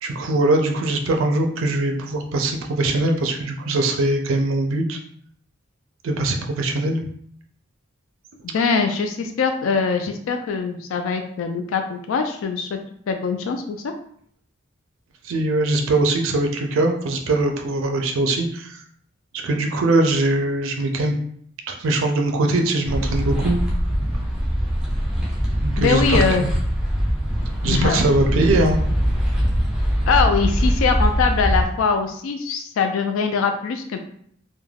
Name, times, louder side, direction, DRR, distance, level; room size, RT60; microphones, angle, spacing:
voice 1, 0.0-5.0 6.0-7.0 15.2-18.8 19.3-21.2 21.7-23.6 25.6-26.5 27.6-28.8, right 2 dB, 75° right, 3 dB, 0.4 m, -21 dB
voice 2, 8.4-12.8 13.1-13.8 25.8-26.5 27.7-28.0 30.1-34.0, left 5 dB, 75° left, 6 dB, 0.3 m, -22 dB
sound 1, 22.8-31.7, equal, 5° right, 0.4 m, -22 dB
2.3 x 2.1 x 3.2 m, 0.63 s
head